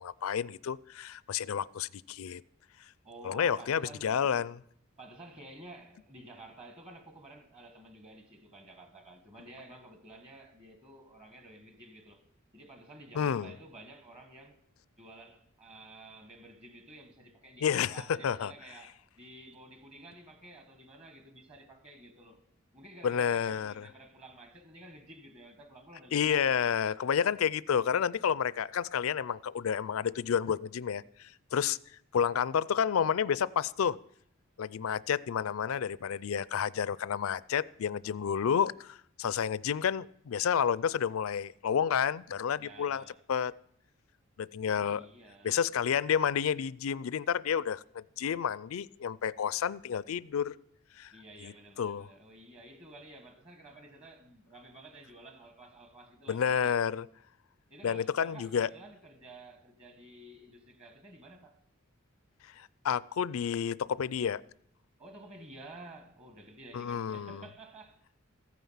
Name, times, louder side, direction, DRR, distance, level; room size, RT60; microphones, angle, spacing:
voice 1, 0.0-2.4 3.2-4.6 13.1-13.5 17.6-18.5 23.0-23.9 26.1-31.8 32.1-34.0 34.6-43.5 44.4-45.1 45.4-50.6 51.0-51.1 51.4-51.5 51.8-52.1 56.3-57.1 57.8-58.7 62.6-64.4 66.7-67.4, left 7 dB, 75° left, 0.4 m, -30 dB
voice 2, 3.0-4.2 5.0-12.2 12.5-14.6 15.0-22.4 22.7-26.8 42.6-43.2 44.6-45.6 51.1-56.8 57.7-61.6 65.0-68.0, right 2 dB, 30° right, 1.4 m, -52 dB
14.5 x 9.3 x 5.6 m
head